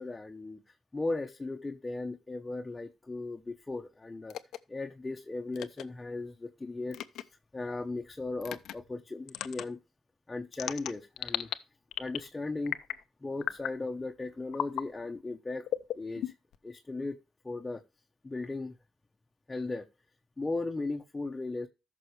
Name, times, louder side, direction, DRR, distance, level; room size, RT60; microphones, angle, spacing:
voice 1, 0.0-4.4 4.7-7.3 7.5-9.8 10.3-11.5 12.0-12.8 13.2-15.7 15.9-16.3 16.6-17.2 17.4-17.8 18.2-18.8 19.5-19.9 20.4-21.7, left 3 dB, 20° left, 1.1 m, -37 dB
sound 1, 4.3-4.6 5.5-5.8 6.9-7.2 8.4-8.7 9.3-9.6 10.5-11.5 11.9-12.3 12.7-13.0 13.4-13.8 14.5-14.8 15.7-16.6, left 11 dB, 80° left, 0.7 m, -35 dB
14.0 x 6.2 x 3.3 m
cardioid pair, 90°, 0 cm